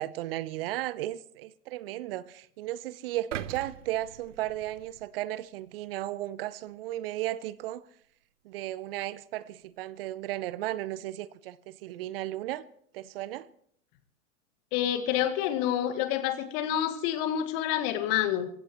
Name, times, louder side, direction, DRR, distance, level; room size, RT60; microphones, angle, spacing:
voice 1, 0.0-7.8 8.4-12.6 12.9-13.5, right 14 dB, 45° right, 0.7 m, -35 dB
sound 1, 3.3-5.5 6.0-6.1, right 10 dB, 65° right, 1.0 m, -41 dB
voice 2, 14.7-18.5, left 11 dB, 40° left, 1.8 m, -28 dB
24.5 x 16.0 x 3.0 m
figure-of-eight pair, 100°, 40 cm